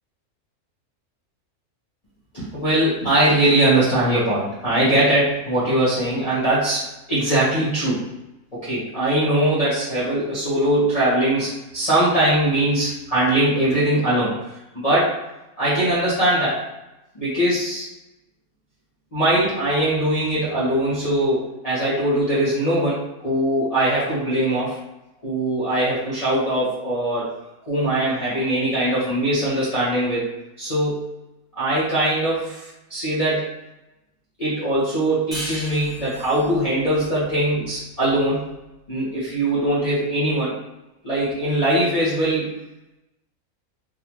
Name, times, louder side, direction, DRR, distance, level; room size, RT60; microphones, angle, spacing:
voice 1, 2.3-8.0 8.5-14.3 14.7-15.1 15.6-16.6 17.1-17.9 19.1-24.8 25.2-27.3 27.7-30.3 30.6-31.0 31.6-33.4 34.4-38.5 38.9-40.6 41.0-42.5, right 1 dB, 30° left, -12 dB, 0.9 m, -21 dB
sound 1, 35.3-38.5, equal, ahead, 1.0 m, -36 dB
3.6 x 2.4 x 2.9 m, 0.97 s
omnidirectional pair, 1.6 m